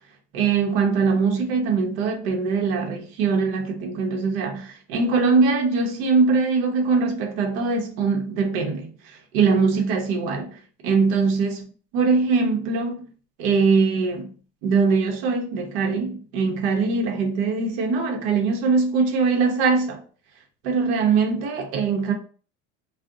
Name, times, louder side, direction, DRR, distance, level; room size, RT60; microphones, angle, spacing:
voice 1, 0.3-11.7 11.9-13.0 13.4-14.4 14.6-20.0 20.6-22.1, right 4 dB, 75° right, 0.8 m, -22 dB
2.4 x 2.1 x 3.5 m
cardioid pair, 165°, 31 cm